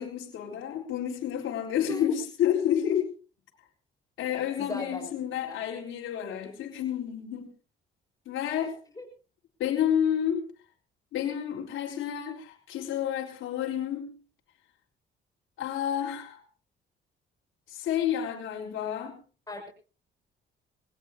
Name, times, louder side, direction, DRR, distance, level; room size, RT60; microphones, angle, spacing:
voice 1, 0.0-3.1 4.2-7.5 8.3-8.7 9.6-10.4 11.1-14.1 15.6-16.4 17.7-19.2, left 9 dB, 85° left, 3.9 m, -30 dB
voice 2, 1.8-2.2 4.6-5.1 5.4-5.6 8.9-9.0 19.5-19.7, left 2 dB, 20° left, 6.7 m, -37 dB
22.0 x 18.0 x 2.9 m
cardioid pair, 90°, 20 cm